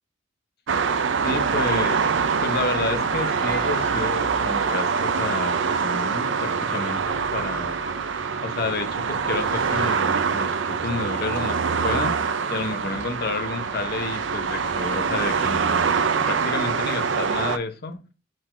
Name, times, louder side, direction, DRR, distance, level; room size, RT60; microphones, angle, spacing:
sound 1, 0.7-17.6, right 5 dB, 70° right, 0.5 m, -24 dB
voice 1, 1.2-2.0 2.4-7.8 8.4-12.2 12.5-15.9 16.3-18.0, left 3 dB, 55° left, 0.8 m, -30 dB
Screaming, 3.1-4.2 4.6-5.3 6.0-6.6 7.1-7.3 7.8-8.7 9.5-10.6, right 3 dB, 50° right, 1.1 m, -39 dB
5.1 x 3.8 x 2.5 m
head